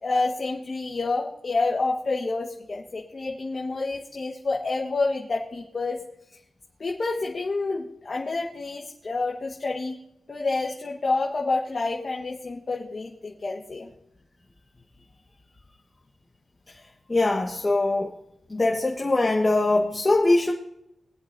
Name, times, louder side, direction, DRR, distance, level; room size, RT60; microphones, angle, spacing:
voice 1, 0.0-6.0 6.8-10.0 10.3-13.9, left 3 dB, 45° left, -1 dB, 1.5 m, -28 dB
voice 2, 17.1-18.1 18.5-20.5, left 2 dB, 25° left, 0 dB, 1.6 m, -22 dB
23.5 x 8.0 x 2.7 m, 0.84 s
cardioid pair, 85°, 0 cm